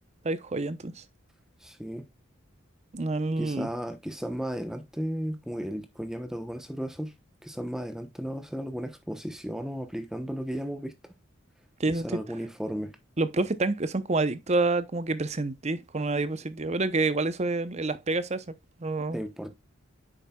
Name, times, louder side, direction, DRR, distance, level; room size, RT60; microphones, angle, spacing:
voice 1, 0.2-1.0 2.9-3.7 11.8-12.1 13.2-18.5 18.8-19.2, right 3 dB, 30° right, 0.7 m, -28 dB
voice 2, 1.6-2.1 3.4-7.1 7.4-10.9 11.9-13.0 19.1-19.5, equal, ahead, 0.9 m, -34 dB
8.7 x 6.5 x 2.3 m
head